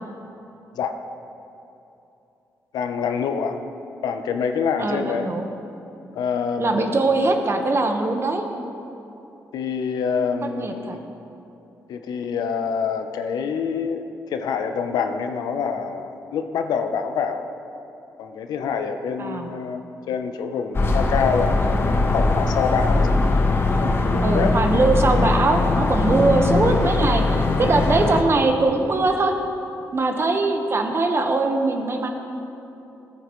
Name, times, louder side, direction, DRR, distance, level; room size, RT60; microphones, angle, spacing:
voice 1, 2.7-3.6 4.0-5.3 6.1-7.1 9.5-11.0 11.9-17.5 18.2-23.1 23.5-24.5, left 6 dB, 85° left, 7 dB, 0.7 m, -26 dB
voice 2, 4.8-5.5 6.6-8.4 10.6-11.0 19.2-19.5 24.2-29.3 29.9-32.1, right 2 dB, 40° right, 4 dB, 1.2 m, -21 dB
sound 1, 20.7-28.2, left 3 dB, 35° left, 1.2 m, -20 dB
17.0 x 9.3 x 3.1 m, 3.0 s
cardioid pair, 75°, 7 cm